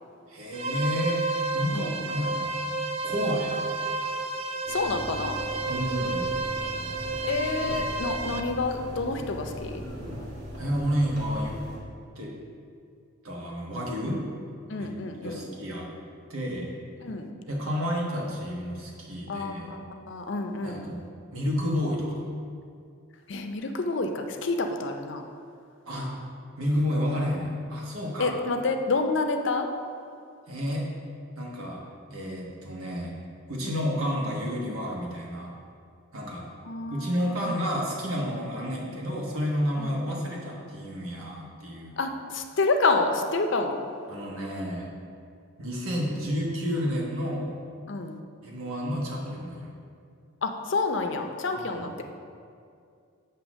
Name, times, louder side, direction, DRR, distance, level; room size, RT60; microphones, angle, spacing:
voice 1, 0.3-1.2 1.5-2.5 3.0-3.8 5.7-6.3 10.6-11.6 12.2-12.3 13.2-14.2 14.8-14.9 15.2-15.9 16.3-16.7 17.5-19.7 20.6-21.0 21.3-22.3 25.9-26.1 26.6-28.3 30.5-30.9 31.4-31.8 32.1-33.1 33.5-35.5 36.1-36.5 36.9-41.9 44.1-44.9 45.6-47.6 48.4-49.7 51.5-51.9, equal, 85° right, -2 dB, 1.3 m, -30 dB
sound 1, 0.5-8.4, right 3 dB, 30° right, 0.3 m, -31 dB
sound 2, 4.6-11.8, equal, 50° right, 1.5 m, -39 dB
voice 2, 4.7-5.4 7.2-9.8 14.1-14.2 14.7-15.5 17.0-17.3 19.3-20.9 23.3-25.3 28.2-29.7 33.6-33.8 36.7-37.6 39.8-39.9 42.0-43.8 47.9-48.2 50.4-52.0, left 3 dB, 60° left, 5 dB, 0.5 m, -29 dB
7.8 x 2.8 x 6.1 m, 2.3 s
head